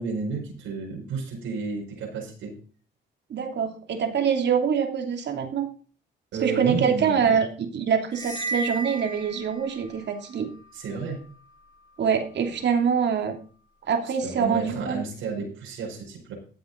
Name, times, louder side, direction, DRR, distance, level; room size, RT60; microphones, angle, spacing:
voice 1, 0.0-2.6 6.3-7.4 10.7-11.2 14.0-16.3, right 4 dB, 85° right, -2 dB, 4.9 m, -32 dB
voice 2, 3.3-5.7 6.4-10.5 12.0-13.3 13.9-15.0, right 7 dB, 60° right, 5 dB, 2.9 m, -25 dB
sound 1, 8.1-10.0, right 2 dB, 20° left, 4.2 m, -33 dB
14.0 x 7.9 x 4.0 m, 0.41 s
cardioid pair, 90°, 20 cm